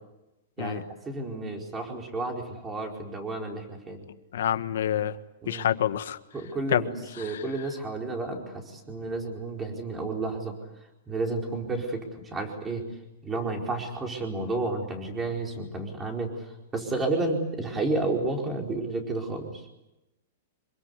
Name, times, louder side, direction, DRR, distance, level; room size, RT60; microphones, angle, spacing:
voice 1, 0.6-4.1 5.4-5.7 6.3-10.5 11.1-12.8 13.2-16.3 16.7-19.6, right 2 dB, 15° right, 2 dB, 4.7 m, -31 dB
voice 2, 4.3-5.2 5.5-6.2 6.7-6.9 7.2-7.4, left 10 dB, 75° left, 11 dB, 1.5 m, -27 dB
27.0 x 23.0 x 8.3 m, 0.93 s
supercardioid pair, 160°, 0 cm